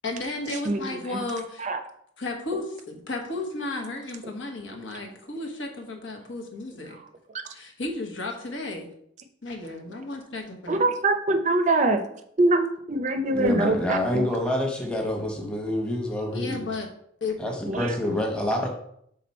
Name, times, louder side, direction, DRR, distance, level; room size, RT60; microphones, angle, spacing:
voice 1, 0.0-1.7 2.2-7.0 7.5-8.9 9.4-10.8 16.3-16.9 17.2-17.4, left 2 dB, 80° left, 2 dB, 1.2 m, -33 dB
voice 2, 0.6-1.2 1.6-1.8 10.7-12.0 12.4-14.3 17.7-17.9, right 2 dB, 40° right, 7 dB, 0.5 m, -24 dB
voice 3, 13.3-16.6 17.4-18.7, left 1 dB, 5° left, 1 dB, 1.0 m, -27 dB
6.0 x 3.9 x 4.2 m, 0.70 s
head